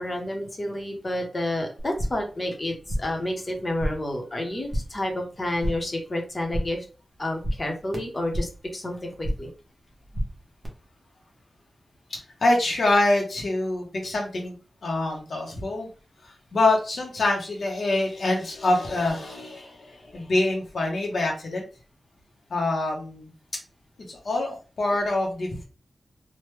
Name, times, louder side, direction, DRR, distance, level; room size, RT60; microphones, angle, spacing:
voice 1, 0.0-6.8 7.2-9.5, left 1 dB, 30° left, 2 dB, 0.8 m, -30 dB
sound 1, 1.8-2.3 2.6-3.2 3.5-4.2 4.4-5.0 5.3-6.0 6.3-6.9 7.1-8.7 9.0-9.6 9.9-10.7, equal, 30° right, 0.9 m, -32 dB
voice 2, 12.1-14.6 14.8-15.9 16.2-21.6 22.5-23.3 24.1-25.6, left 2 dB, 60° left, 0 dB, 0.7 m, -25 dB
3.2 x 2.1 x 3.1 m, 0.35 s
wide cardioid pair, 135°, 0 cm